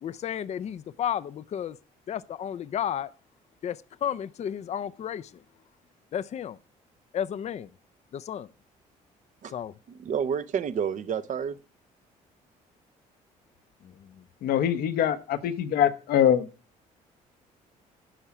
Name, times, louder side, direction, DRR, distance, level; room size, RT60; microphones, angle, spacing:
voice 1, 0.0-1.8 2.1-3.1 3.6-5.4 6.1-6.6 7.1-7.7 8.1-8.5 9.5-9.7 13.8-14.3, left 9 dB, 45° left, 0.5 m, -33 dB
voice 2, 10.0-11.6, right 7 dB, 55° right, 0.8 m, -29 dB
voice 3, 14.4-16.5, left 10 dB, 70° left, 0.9 m, -23 dB
10.0 x 5.6 x 5.9 m
supercardioid pair, 70°, 16 cm